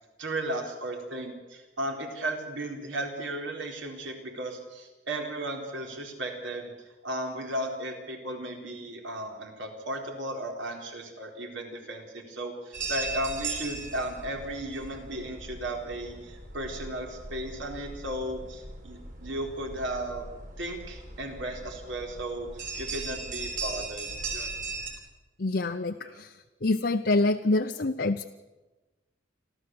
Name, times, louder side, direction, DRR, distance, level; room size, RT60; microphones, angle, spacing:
voice 1, 0.2-6.7 7.0-20.3 20.6-24.5 25.7-25.8 26.0-26.2, right 1 dB, 75° right, 2 dB, 4.1 m, -35 dB
sound 1, 12.7-24.9, right 3 dB, 40° right, 4.1 m, -38 dB
voice 2, 25.4-28.2, left 2 dB, 55° left, 5 dB, 0.7 m, -26 dB
28.0 x 13.5 x 7.8 m, 1.2 s
head